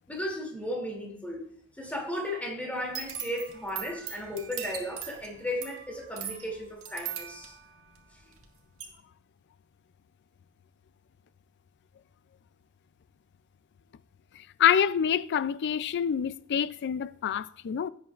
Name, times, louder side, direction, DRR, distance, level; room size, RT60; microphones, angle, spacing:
voice 1, 0.1-1.4 1.8-7.5, left 1 dB, 5° left, 2.8 m, -35 dB
sound 1, 2.8-8.4 8.8-8.9, right 9 dB, 70° right, 1.9 m, -40 dB
voice 2, 14.6-17.9, left 8 dB, 55° left, 0.4 m, -26 dB
16.5 x 9.1 x 2.5 m
head